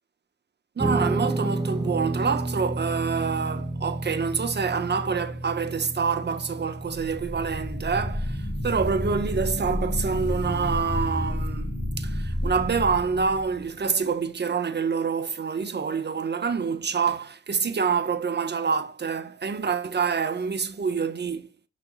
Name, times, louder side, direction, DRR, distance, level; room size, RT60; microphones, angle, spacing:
Guitar, 0.8-10.1, right 2 dB, 10° right, 0.8 m, -32 dB
voice 1, 0.8-21.5, right 5 dB, 35° right, 1.4 m, -27 dB
sound 1, 6.9-13.9, left 1 dB, 10° left, 3.3 m, -30 dB
6.3 x 6.1 x 2.5 m
supercardioid pair, 70°, 30 cm